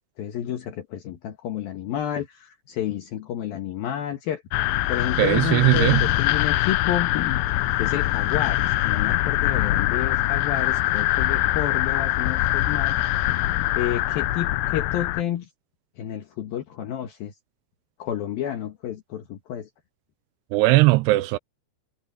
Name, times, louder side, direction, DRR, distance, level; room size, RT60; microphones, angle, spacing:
voice 1, 0.0-4.4 4.9-13.0 13.8-15.5 16.0-17.3 18.0-19.7, left 10 dB, 65° left, 3.1 m, -30 dB
sound 1, 4.5-15.2, left 15 dB, 85° left, 3.0 m, -23 dB
voice 2, 5.2-6.1 20.5-21.4, right 19 dB, 85° right, 2.7 m, -18 dB
omnidirectional pair, 4.7 m